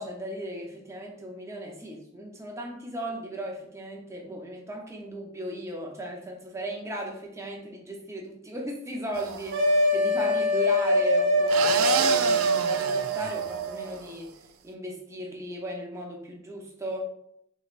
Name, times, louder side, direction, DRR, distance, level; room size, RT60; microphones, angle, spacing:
voice 1, 0.0-14.3 14.6-17.0, equal, 15° right, 0 dB, 0.6 m, -36 dB
sound 1, 9.1-9.9 11.5-14.1, right 7 dB, 85° right, 0.4 m, -30 dB
sound 2, 9.5-13.9, equal, 55° right, 0.8 m, -24 dB
6.4 x 3.1 x 2.4 m, 0.76 s
head